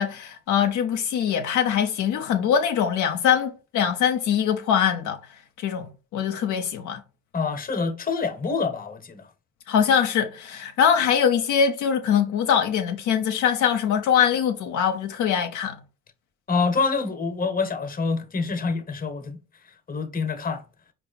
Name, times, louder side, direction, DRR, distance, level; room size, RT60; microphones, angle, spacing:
voice 1, 0.0-5.2 5.6-7.0 9.7-15.8, left 8 dB, 65° left, 0.6 m, -23 dB
voice 2, 7.3-9.3 16.5-19.4 19.9-20.6, left 4 dB, 25° left, 0.8 m, -26 dB
4.5 x 2.4 x 3.9 m
hypercardioid pair, 55°, 33 cm